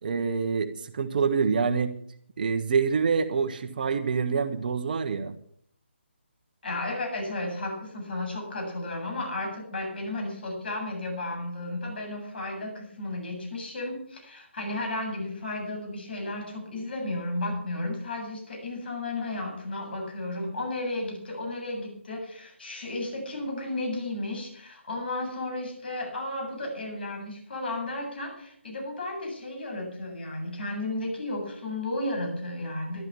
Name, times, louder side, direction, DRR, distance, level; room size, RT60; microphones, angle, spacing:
voice 1, 0.0-1.9 2.4-5.3, right 5 dB, 45° right, 7 dB, 1.4 m, -26 dB
voice 2, 6.6-33.0, left 2 dB, 55° left, 2 dB, 7.8 m, -33 dB
12.5 x 12.5 x 7.0 m, 0.64 s
figure-of-eight pair, 150°, 7 cm